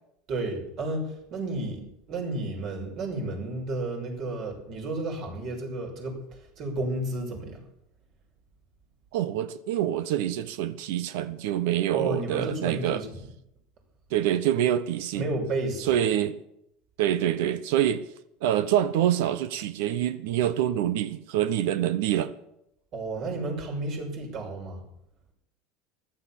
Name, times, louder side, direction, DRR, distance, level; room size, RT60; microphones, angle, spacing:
voice 1, 0.3-1.8 2.1-7.6 11.9-13.3 15.1-15.9 22.9-24.8, right 2 dB, 50° right, 6.1 m, -32 dB
voice 2, 9.1-13.0 14.1-15.2 15.9-16.3 17.0-18.0 18.4-22.3, right 11 dB, 75° right, 1.0 m, -26 dB
14.5 x 12.5 x 7.3 m
supercardioid pair, 125°, 0 cm